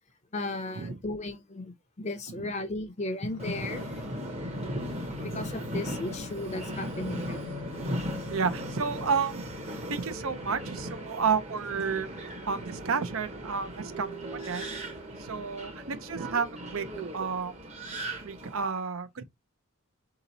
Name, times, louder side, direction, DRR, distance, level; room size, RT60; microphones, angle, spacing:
voice 1, 0.3-3.9 5.2-7.6, left 2 dB, 30° left, 0.7 m, -35 dB
sound 1, 3.2-11.2 11.8-13.1 13.7-13.8, left 5 dB, 85° left, 1.0 m, -46 dB
Subway metro underground, 3.4-18.7, right 1 dB, 30° right, 0.9 m, -38 dB
voice 2, 4.6-5.3 6.8-7.0 8.3-9.5 9.8-12.1 12.5-14.7 15.2-17.5 18.2-19.2, right 5 dB, 70° right, 0.6 m, -31 dB
3.9 x 2.9 x 4.0 m
head